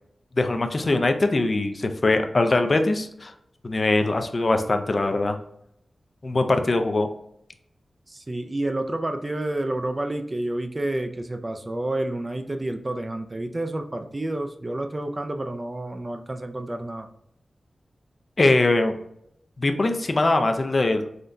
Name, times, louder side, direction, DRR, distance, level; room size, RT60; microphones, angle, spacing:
voice 1, 0.4-3.3 3.6-5.4 6.2-7.1 18.4-18.9 19.6-21.0, left 2 dB, 45° left, 6 dB, 0.3 m, -22 dB
voice 2, 8.1-17.1, right 1 dB, 30° right, 6 dB, 0.3 m, -29 dB
3.7 x 2.2 x 2.5 m, 0.75 s
wide cardioid pair, 70°, 0 cm